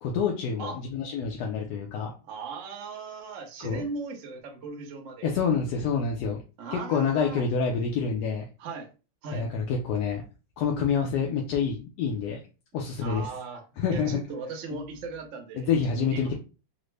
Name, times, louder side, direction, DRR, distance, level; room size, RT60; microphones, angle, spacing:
voice 1, 0.0-2.1 3.6-3.9 5.2-6.4 6.7-8.5 9.3-10.2 10.6-12.4 12.7-13.3 13.8-14.2 14.7-14.8 15.6-16.3, left 6 dB, 70° left, 1 dB, 1.0 m, -27 dB
voice 2, 2.3-5.3 6.6-7.5 8.6-8.9 9.2-9.5 13.0-13.6 13.9-15.7 16.0-16.3, right 4 dB, 60° right, 3 dB, 0.8 m, -38 dB
3.8 x 2.1 x 3.2 m, 0.32 s
omnidirectional pair, 2.0 m